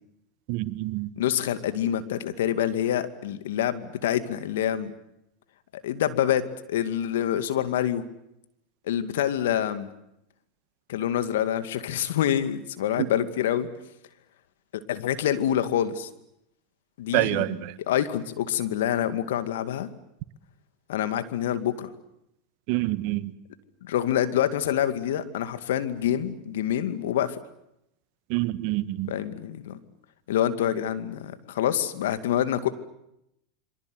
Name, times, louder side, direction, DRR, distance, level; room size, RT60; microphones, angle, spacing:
voice 1, 0.5-1.1 13.0-13.1 17.1-17.7 22.7-23.3 28.3-29.1, right 18 dB, 60° right, 14 dB, 1.6 m, -26 dB
voice 2, 1.2-4.9 5.8-8.0 8.9-9.9 10.9-13.7 14.7-16.1 17.0-17.6 17.9-19.9 20.9-21.9 23.8-27.4 29.1-29.8 30.3-32.7, left 10 dB, 75° left, 11 dB, 2.3 m, -26 dB
27.5 x 24.5 x 7.9 m, 0.81 s
hypercardioid pair, 95°, 0 cm